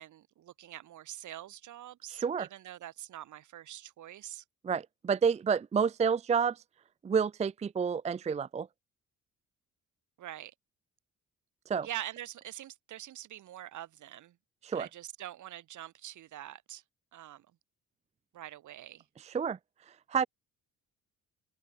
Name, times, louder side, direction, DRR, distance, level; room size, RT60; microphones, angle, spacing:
voice 1, 0.0-4.4 10.2-10.5 11.8-14.4 14.7-16.8 17.1-17.5 18.3-19.0, right 12 dB, 70° right, 4.4 m, -44 dB
voice 2, 2.1-2.5 4.6-6.6 7.0-8.7 11.7-11.9 14.6-14.9 19.2-19.6 20.1-20.3, right 6 dB, 20° right, 0.5 m, -29 dB
cardioid pair, 165°, 31 cm